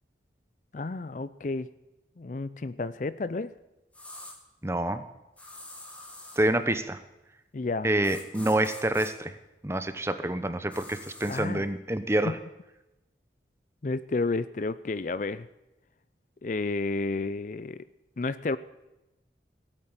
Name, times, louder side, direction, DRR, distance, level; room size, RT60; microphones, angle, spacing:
voice 1, 0.7-1.7 2.2-3.6 7.5-7.9 11.3-11.7 12.2-12.3 13.8-15.5 16.4-17.9 18.2-18.6, left 3 dB, 45° left, 15 dB, 0.4 m, -31 dB
sound 1, 3.9-4.4 5.4-6.4 8.0-9.1 10.7-11.4, left 1 dB, 10° left, 1.8 m, -45 dB
voice 2, 4.6-5.0 6.4-7.0 7.8-9.3 9.6-12.4, right 1 dB, 15° right, 11 dB, 0.8 m, -27 dB
17.5 x 9.0 x 8.9 m, 0.98 s
head